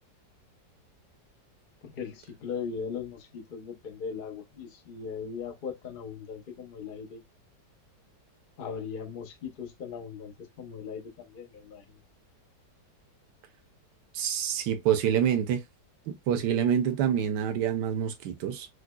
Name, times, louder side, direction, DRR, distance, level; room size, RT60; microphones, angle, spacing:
voice 1, 1.8-7.2 8.6-11.8, left 6 dB, 85° left, 0.4 m, -39 dB
voice 2, 14.1-15.6 16.1-18.7, right 9 dB, 70° right, 1.2 m, -27 dB
4.8 x 2.0 x 2.2 m
omnidirectional pair, 2.0 m